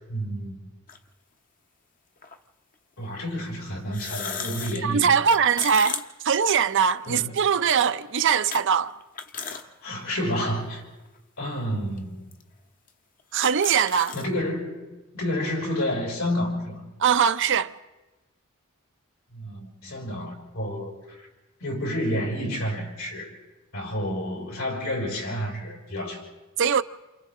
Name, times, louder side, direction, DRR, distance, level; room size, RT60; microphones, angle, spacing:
voice 1, 0.1-0.7 3.0-5.1 7.0-7.3 9.3-10.8 11.4-12.2 14.1-16.8 19.3-21.3 21.6-23.3 23.7-26.3, equal, 80° left, 6.2 m, -30 dB
sound 1, 0.9-1.0 2.2-2.4 3.8-7.1 7.5-7.6 8.5-8.6 9.0-9.6 10.1-10.2 11.1-11.2 12.0-12.1 12.3-12.4 12.9-13.0 13.2-14.3, left 6 dB, 40° left, 0.9 m, -35 dB
voice 2, 4.8-8.9 13.3-14.1 17.0-17.7 26.6-26.8, right 7 dB, 60° right, 0.6 m, -21 dB
28.5 x 28.0 x 3.7 m
head